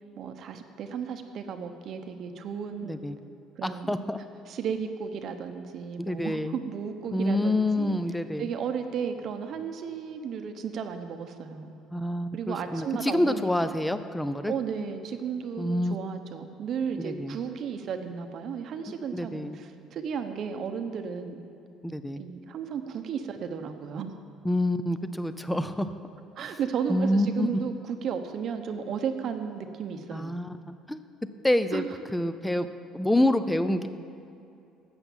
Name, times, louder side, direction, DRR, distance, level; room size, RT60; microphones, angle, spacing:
voice 1, 0.2-3.0 3.6-4.0 4.5-8.0 8.4-11.8 12.3-13.7 14.5-21.4 22.2-24.2 26.4-30.4 31.7-31.9, right 7 dB, 45° right, 7 dB, 0.8 m, -34 dB
voice 2, 2.8-3.1 3.6-4.2 6.0-6.5 7.1-8.5 11.9-14.5 15.6-16.0 17.0-17.4 19.1-19.6 21.8-22.2 24.4-25.9 26.9-27.5 30.1-31.0 31.4-31.8 32.1-32.7 32.9-33.9, left 1 dB, 5° left, 11 dB, 0.4 m, -27 dB
12.0 x 8.0 x 7.2 m, 2.7 s
cardioid pair, 165°, 0 cm